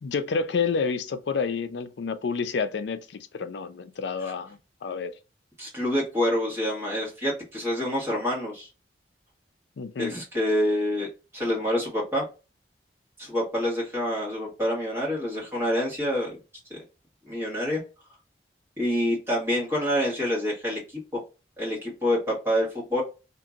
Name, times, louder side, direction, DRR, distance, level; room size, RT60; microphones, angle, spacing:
voice 1, 0.0-5.1 9.8-10.1, left 5 dB, 70° left, 0.4 m, -29 dB
voice 2, 5.6-8.7 10.0-12.2 13.2-16.4 16.7-16.8 17.2-17.8 18.8-21.0 21.6-23.0, equal, 15° right, 1.4 m, -27 dB
2.8 x 2.5 x 2.4 m
head